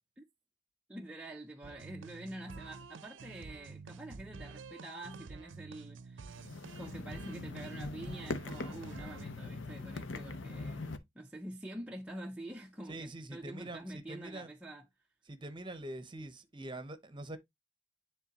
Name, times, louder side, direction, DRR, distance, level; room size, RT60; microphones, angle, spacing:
voice 1, 0.9-6.4 6.7-14.9, right 1 dB, 5° right, 0.5 m, -46 dB
sound 1, 1.6-9.3, right 4 dB, 75° right, 0.6 m, -49 dB
sound 2, 6.3-11.0, left 3 dB, 80° left, 0.8 m, -42 dB
voice 2, 12.9-14.5 15.3-17.4, right 1 dB, 25° right, 0.8 m, -44 dB
9.8 x 3.7 x 2.9 m
head